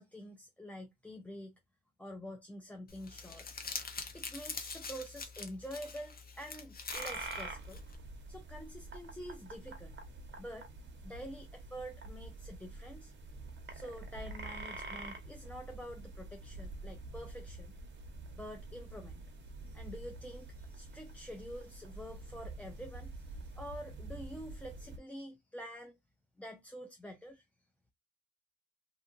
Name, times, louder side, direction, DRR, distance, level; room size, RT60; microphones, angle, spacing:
voice 1, 0.0-1.5 2.0-3.5 4.1-7.8 8.3-10.0 10.4-10.7 11.0-13.1 13.7-17.8 18.3-19.2 19.6-26.0 26.4-27.4, equal, 5° left, 0.4 m, -47 dB
Crumpling crinkling, 2.9-7.9, left 4 dB, 30° left, 0.7 m, -44 dB
sound 1, 6.9-25.0, right 2 dB, 40° right, 0.9 m, -47 dB
2.7 x 2.5 x 2.5 m
cardioid pair, 90°, 30 cm